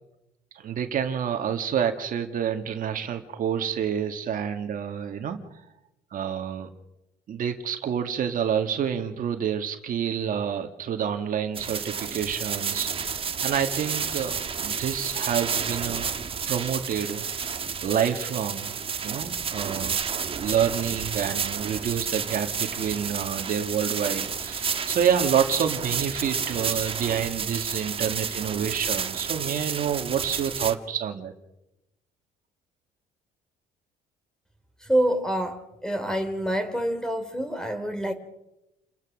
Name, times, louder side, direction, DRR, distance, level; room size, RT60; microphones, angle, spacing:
voice 1, 0.6-5.4 6.1-6.7 7.3-16.1 16.5-18.7 19.0-20.0 20.2-31.3, right 8 dB, 55° right, 2.1 m, -28 dB
sound 1, 11.5-30.7, right 6 dB, 35° right, 1.5 m, -31 dB
voice 2, 34.9-38.1, right 1 dB, 5° left, 3.3 m, -26 dB
29.5 x 15.5 x 6.5 m
cardioid pair, 110°, 17 cm